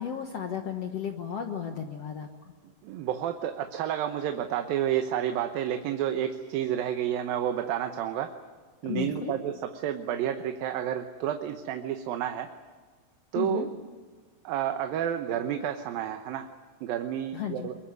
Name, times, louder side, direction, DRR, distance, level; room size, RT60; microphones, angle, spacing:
voice 1, 0.0-2.5 8.8-9.3 13.4-13.7 17.3-17.7, left 8 dB, 55° left, 4 dB, 2.0 m, -34 dB
voice 2, 2.8-8.4 8.8-12.5 13.3-13.7 14.4-16.5 16.8-17.8, right 10 dB, 85° right, 6 dB, 2.8 m, -30 dB
23.5 x 22.5 x 9.6 m, 1.5 s
omnidirectional pair, 4.0 m